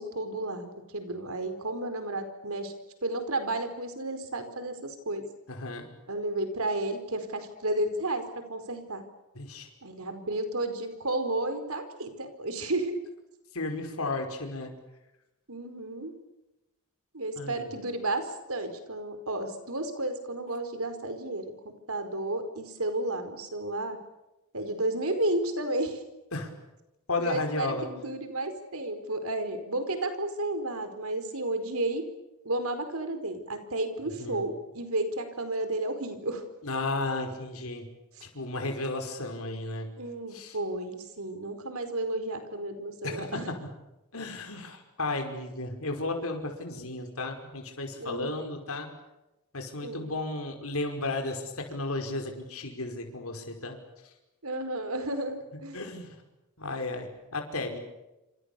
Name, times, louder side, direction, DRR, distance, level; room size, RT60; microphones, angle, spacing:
voice 1, 0.0-2.7 3.0-5.2 6.1-9.0 9.8-13.0 15.5-16.1 17.1-21.4 21.9-24.0 24.5-26.0 27.2-32.1 32.4-36.4 38.1-38.2 40.0-43.5 48.0-48.5 49.8-50.2 54.4-55.8, right 2 dB, 70° right, 9 dB, 4.7 m, -32 dB
voice 2, 5.5-5.9 9.4-9.7 13.5-14.7 17.4-17.6 26.3-26.5 27.1-27.9 34.2-34.4 36.6-37.9 38.2-39.9 40.3-40.6 43.0-43.4 44.1-48.9 49.5-53.8 55.7-56.2 56.6-57.8, left 2 dB, 70° left, 4 dB, 5.2 m, -34 dB
28.0 x 27.0 x 7.0 m, 0.96 s
head